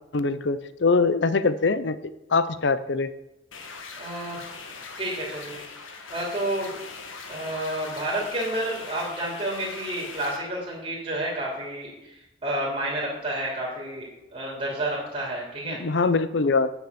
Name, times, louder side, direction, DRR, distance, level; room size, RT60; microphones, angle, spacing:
voice 1, 0.1-3.1 15.7-16.7, left 4 dB, 65° left, 14 dB, 0.6 m, -23 dB
sound 1, 3.5-10.4, left 4 dB, 90° left, 1.5 m, -41 dB
voice 2, 4.0-4.4 5.0-6.8 7.3-15.8, right 1 dB, 30° right, -3 dB, 3.0 m, -30 dB
9.5 x 7.3 x 6.9 m, 0.93 s
head